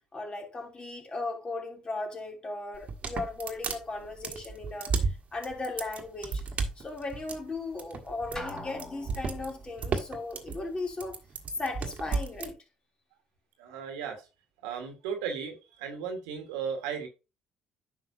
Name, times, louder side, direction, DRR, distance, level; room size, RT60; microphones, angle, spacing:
voice 1, 0.1-6.4 6.8-11.2 11.6-12.5, left 3 dB, 35° left, 3.0 m, -37 dB
sound 1, 2.7-12.5, right 4 dB, 55° right, 1.5 m, -33 dB
Drum, 8.4-9.6, left 2 dB, 20° left, 2.0 m, -41 dB
voice 2, 13.6-14.2 14.6-17.1, right 7 dB, 90° right, 1.6 m, -35 dB
9.8 x 6.0 x 2.7 m
hypercardioid pair, 60°, 3 cm